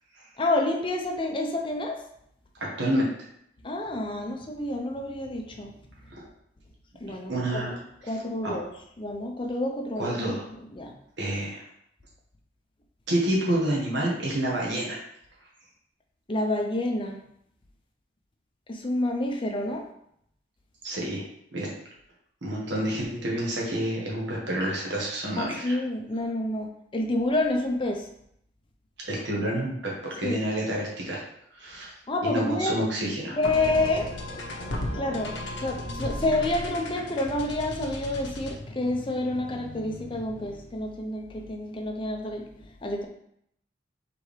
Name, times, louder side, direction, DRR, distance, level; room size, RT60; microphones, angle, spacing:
voice 1, 0.4-2.0 3.6-5.7 7.0-7.6 8.0-8.7 9.0-10.2 10.7-10.9 16.3-17.2 18.7-19.9 25.4-28.1 30.2-30.4 32.1-32.9 33.4-34.1 34.9-35.3 35.6-43.1, left 2 dB, 25° left, 2 dB, 0.6 m, -28 dB
voice 2, 2.6-3.1 6.1-6.3 7.3-7.8 8.4-8.6 9.9-10.4 11.2-11.6 13.1-15.0 20.8-21.2 21.5-21.7 22.4-25.8 29.0-31.2 31.5-31.9 32.2-33.4, right 1 dB, 65° right, -4 dB, 1.3 m, -28 dB
sound 1, 33.4-40.8, left 1 dB, 70° left, 0.9 m, -36 dB
4.6 x 3.4 x 3.2 m, 0.73 s
head